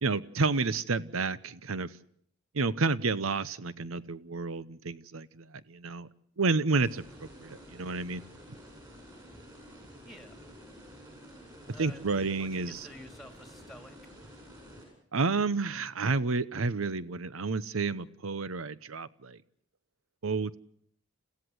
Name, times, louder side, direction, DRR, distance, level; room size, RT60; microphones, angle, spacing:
voice 1, 0.0-1.9 2.5-6.1 6.4-8.2 11.8-12.9 15.1-19.4 20.2-20.6, right 4 dB, 80° right, 17 dB, 0.9 m, -30 dB
sound 1, 6.8-14.8, equal, 20° right, 7.9 m, -50 dB
voice 2, 11.7-12.0 12.3-14.0, left 1 dB, ahead, 7 dB, 2.6 m, -49 dB
29.5 x 15.5 x 7.9 m, 0.68 s
head